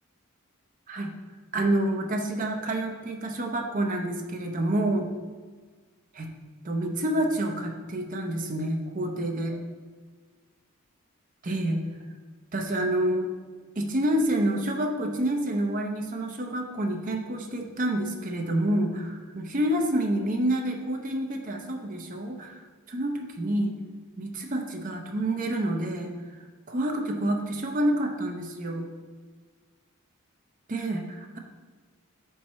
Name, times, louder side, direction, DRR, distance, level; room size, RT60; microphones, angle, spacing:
voice 1, 1.5-5.1 6.1-6.3 6.6-9.6 11.4-11.8 12.5-13.3 13.8-22.6 22.9-23.7 24.2-26.1 26.7-28.9 30.7-31.4, right 1 dB, 35° right, 3 dB, 0.6 m, -28 dB
5.6 x 4.7 x 4.2 m, 1.4 s
head